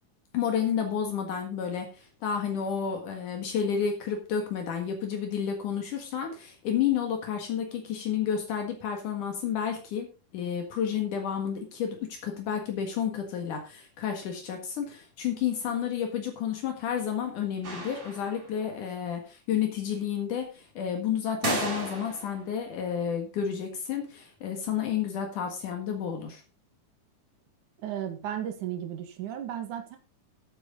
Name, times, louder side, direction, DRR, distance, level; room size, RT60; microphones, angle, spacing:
voice 1, 0.3-10.1 10.3-12.0 12.2-26.4, left 8 dB, 75° left, 3 dB, 3.3 m, -31 dB
sound 1, 17.6-18.6 21.4-22.4, right 2 dB, 45° right, 5.5 m, -33 dB
voice 2, 27.8-30.0, right 10 dB, 70° right, 6 dB, 3.1 m, -34 dB
11.5 x 9.4 x 3.9 m, 0.31 s
omnidirectional pair, 3.7 m